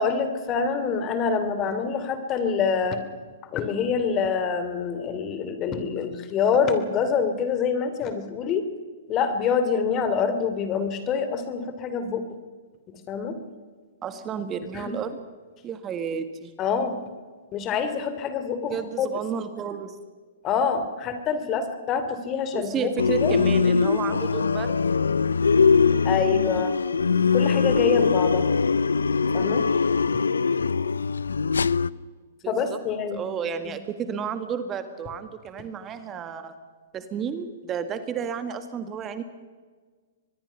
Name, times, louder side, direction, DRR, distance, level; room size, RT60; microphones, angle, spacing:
voice 1, 0.0-3.0 3.5-8.6 9.1-12.2 13.1-13.4 14.7-14.9 16.6-17.0 17.5-18.7 19.0-19.1 20.4-22.9 23.2-23.3 26.0-26.7 27.3-28.5 29.3-29.7 32.5-33.2, left 6 dB, 30° left, 10 dB, 2.8 m, -26 dB
voice 2, 14.0-15.2 15.6-16.5 18.7-20.0 22.5-24.8 26.5-26.8 32.4-32.8 33.1-36.6 36.9-39.2, right 7 dB, 25° right, 9 dB, 1.6 m, -32 dB
sound 1, 23.0-31.9, left 5 dB, 85° left, 0.5 m, -22 dB
24.5 x 21.0 x 5.7 m, 1.5 s
hypercardioid pair, 120°, 0 cm